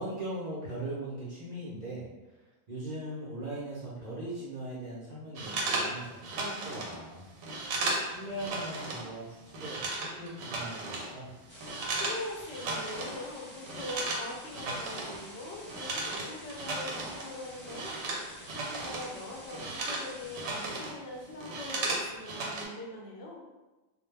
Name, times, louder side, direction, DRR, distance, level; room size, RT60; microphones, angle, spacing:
voice 1, 0.0-2.4 2.7-7.3 8.0-11.3, right 1 dB, 50° right, -8 dB, 0.5 m, -40 dB
sound 1, 5.3-9.1 9.3-12.2 12.5-13.2 13.5-19.1 19.4-21.0 21.3-22.6, right 2 dB, 80° right, 1.0 m, -35 dB
sound 2, 11.5-20.7, equal, 10° left, 0.6 m, -50 dB
voice 2, 11.8-23.4, left 2 dB, 65° left, -2 dB, 0.7 m, -42 dB
2.2 x 2.1 x 3.2 m, 1.1 s
omnidirectional pair, 1.4 m